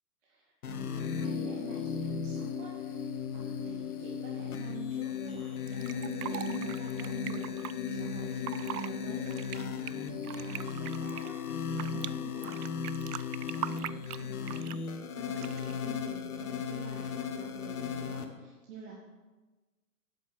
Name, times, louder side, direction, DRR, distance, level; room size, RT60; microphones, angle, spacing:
voice 1, 0.2-3.0 3.3-12.7 13.2-19.0, right 4 dB, 50° right, -4 dB, 2.2 m, -48 dB
sound 1, 0.6-18.2, left 6 dB, 65° left, 1.4 m, -36 dB
Fill (with liquid), 5.7-7.7 8.3-8.9 9.3-12.1 12.4-14.9 15.4-15.7, right 12 dB, 70° right, 0.5 m, -40 dB
8.8 x 7.5 x 6.3 m, 1.2 s
hypercardioid pair, 135°, 47 cm